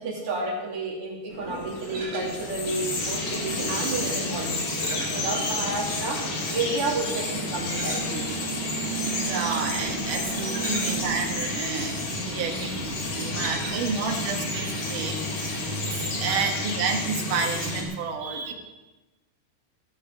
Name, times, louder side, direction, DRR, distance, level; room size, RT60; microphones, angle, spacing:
voice 1, 0.0-8.4 10.5-10.9 13.3-13.7 14.4-14.6 16.2-16.5, right 3 dB, 40° right, -2 dB, 3.4 m, -31 dB
sound 1, 1.3-16.0, equal, 20° left, 5.3 m, -40 dB
Bird vocalization bird call bird song, 1.7-17.8, left 1 dB, 70° left, 4.7 m, -30 dB
voice 2, 9.0-18.5, right 5 dB, 65° right, 3 dB, 2.9 m, -31 dB
15.5 x 9.0 x 7.3 m, 1.1 s
omnidirectional pair, 4.3 m